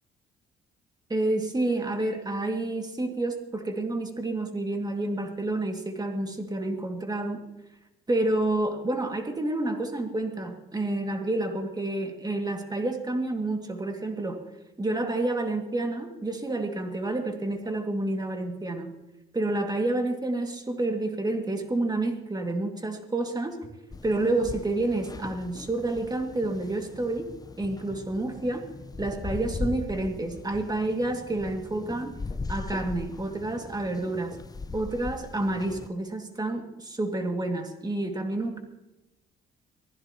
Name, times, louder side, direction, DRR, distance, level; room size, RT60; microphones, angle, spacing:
voice 1, 1.1-7.4 8.1-14.4 14.8-18.9 19.3-23.6 24.0-27.3 27.6-28.7 29.0-32.1 32.5-34.4 34.7-38.6, right 2 dB, 20° right, 3 dB, 2.2 m, -29 dB
sound 1, 23.9-35.9, left 4 dB, 20° left, 0.5 m, -39 dB
23.0 x 15.5 x 3.0 m, 0.99 s
cardioid pair, 90°, 20 cm